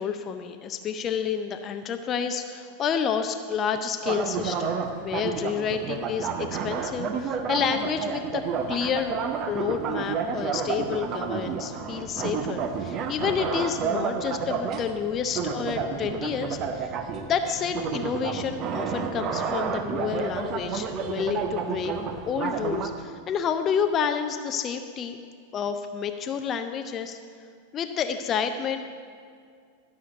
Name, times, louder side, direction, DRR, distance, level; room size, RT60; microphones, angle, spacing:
voice 1, 0.0-9.2 9.4-16.9 17.2-21.9 22.3-25.2 25.5-27.2 27.7-28.8, left 7 dB, 30° left, 7 dB, 0.6 m, -29 dB
sound 1, 4.0-22.9, right 5 dB, 35° right, 0.8 m, -30 dB
13.0 x 6.5 x 7.7 m, 2.2 s
figure-of-eight pair, 90°, 0 cm